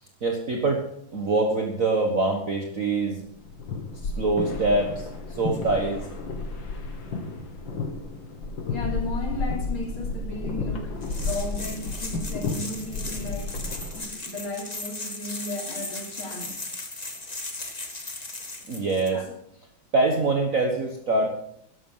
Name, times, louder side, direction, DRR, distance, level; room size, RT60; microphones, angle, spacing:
voice 1, 0.2-0.9 1.1-3.2 4.0-6.1 18.7-19.2 19.9-21.3, right 3 dB, 40° right, 2 dB, 1.7 m, -24 dB
sound 1, 3.3-14.1, left 3 dB, 65° left, 2.5 m, -32 dB
voice 2, 8.7-13.7 13.9-16.7 19.1-19.3, left 2 dB, 80° left, 0 dB, 4.4 m, -35 dB
sound 2, 11.0-19.1, left 2 dB, 20° left, 1.7 m, -37 dB
13.5 x 11.5 x 5.6 m, 0.73 s
omnidirectional pair, 2.3 m